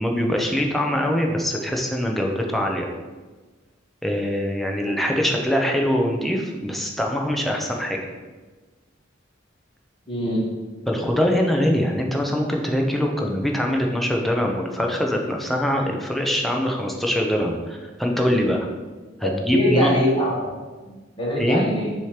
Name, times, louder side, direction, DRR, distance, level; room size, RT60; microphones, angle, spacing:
voice 1, 0.0-2.9 4.0-8.0 10.9-18.7 19.2-19.9 21.4-21.6, equal, ahead, 0 dB, 0.7 m, -23 dB
voice 2, 10.1-10.4 19.4-20.3 20.8-21.9, equal, 25° left, -4 dB, 1.5 m, -23 dB
6.5 x 2.9 x 4.9 m, 1.3 s
head